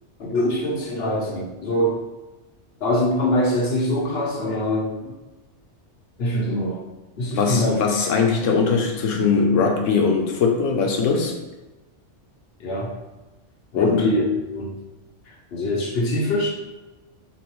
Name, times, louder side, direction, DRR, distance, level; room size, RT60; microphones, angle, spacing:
voice 1, 0.2-2.0 2.8-5.1 6.2-6.8 7.2-7.8 12.6-12.9 13.7-14.2 14.5-14.7 15.3-16.5, left 1 dB, 60° left, -2 dB, 1.1 m, -23 dB
voice 2, 7.3-11.4 13.8-14.1, left 5 dB, 85° left, 2 dB, 1.1 m, -20 dB
4.5 x 3.0 x 3.0 m, 1.1 s
omnidirectional pair, 1.2 m